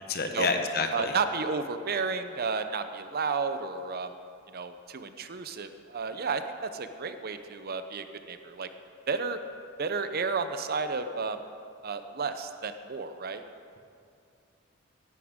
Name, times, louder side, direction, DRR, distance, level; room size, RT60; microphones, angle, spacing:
voice 1, 0.1-1.2, left 4 dB, 50° left, 6 dB, 1.0 m, -29 dB
voice 2, 0.9-4.1 4.5-8.7 9.1-9.4 9.8-11.4 11.8-13.4, right 4 dB, 50° right, 9 dB, 0.6 m, -32 dB
16.5 x 11.0 x 3.6 m, 2.4 s
head